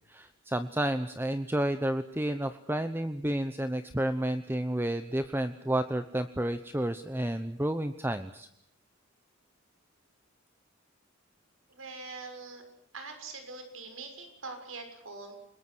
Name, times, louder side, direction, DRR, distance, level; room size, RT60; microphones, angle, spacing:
voice 1, 0.1-8.5, right 1 dB, 10° right, 9 dB, 0.9 m, -31 dB
voice 2, 11.7-12.6 12.9-15.4, right 3 dB, 85° right, 6 dB, 6.5 m, -43 dB
29.0 x 21.0 x 6.3 m, 0.75 s
head